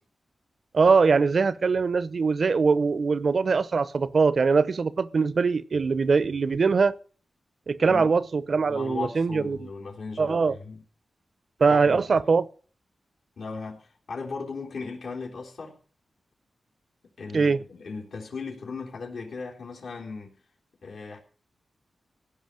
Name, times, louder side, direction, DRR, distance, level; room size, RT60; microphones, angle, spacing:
voice 1, 0.7-6.9 7.7-9.7 10.2-10.5 11.6-12.4 17.3-17.6, right 4 dB, 55° right, 0.8 m, -22 dB
voice 2, 7.8-8.1 8.7-10.8 11.7-12.2 13.4-15.8 17.2-20.3 20.8-21.2, left 4 dB, 80° left, 3.6 m, -37 dB
16.0 x 5.7 x 9.0 m
wide cardioid pair, 100°, 0 cm